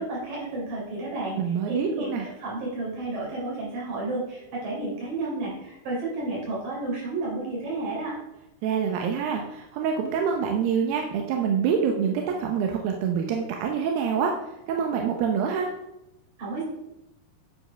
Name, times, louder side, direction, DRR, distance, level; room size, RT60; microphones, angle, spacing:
voice 1, 0.0-1.4 1.7-8.1 16.4-16.6, right 2 dB, 55° right, -5 dB, 5.3 m, -31 dB
voice 2, 1.4-2.3 8.6-14.4 14.7-15.7, right 7 dB, 75° right, 2 dB, 2.3 m, -26 dB
9.5 x 5.3 x 5.6 m, 0.91 s
omnidirectional pair, 4.7 m